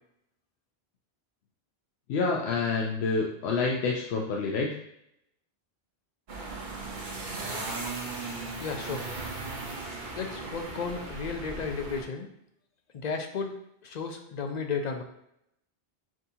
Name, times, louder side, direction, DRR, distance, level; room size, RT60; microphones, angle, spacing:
voice 1, 2.1-4.7, left 4 dB, 85° left, -1 dB, 0.9 m, -28 dB
sound 1, 6.3-12.0, right 3 dB, 50° right, 0.8 m, -37 dB
voice 2, 8.6-9.5 10.1-12.3 12.9-13.5 13.8-15.0, left 5 dB, 55° left, 5 dB, 0.5 m, -34 dB
6.0 x 2.8 x 2.7 m, 0.77 s
omnidirectional pair, 1.1 m